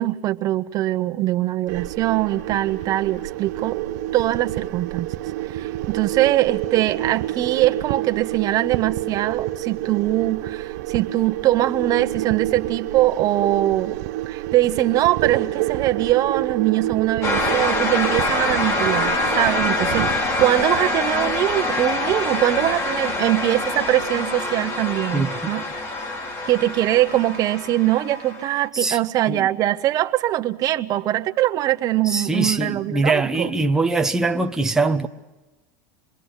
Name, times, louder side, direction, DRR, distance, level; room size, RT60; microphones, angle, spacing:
voice 1, 0.0-3.8 4.1-5.1 5.5-14.0 14.3-25.6 26.5-33.5, right 14 dB, 40° right, 1.3 m, -22 dB
sound 1, 1.7-20.8, right 15 dB, 70° right, 0.9 m, -28 dB
sound 2, 17.2-28.7, left 2 dB, 35° left, 3.1 m, -25 dB
voice 2, 32.0-35.1, right 3 dB, 5° right, 1.1 m, -22 dB
26.5 x 22.0 x 8.3 m
supercardioid pair, 130°, 9 cm